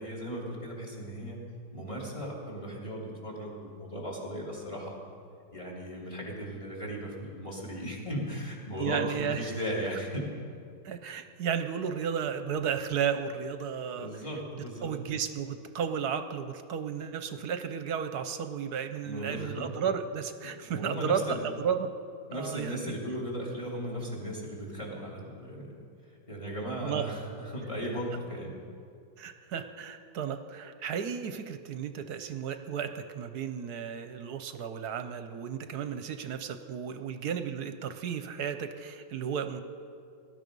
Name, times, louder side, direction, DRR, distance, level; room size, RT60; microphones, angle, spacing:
voice 1, 0.0-1.4 1.7-5.0 5.5-10.3 14.0-14.9 19.0-19.7 20.4-21.4 22.3-25.7 26.3-28.5, equal, 15° left, -3 dB, 3.0 m, -37 dB
voice 2, 8.8-9.5 10.8-14.1 14.5-21.9 22.3-22.8 26.8-27.1 29.2-39.6, right 7 dB, 65° right, 9 dB, 1.2 m, -33 dB
19.0 x 12.0 x 5.3 m, 2.4 s
omnidirectional pair, 1.9 m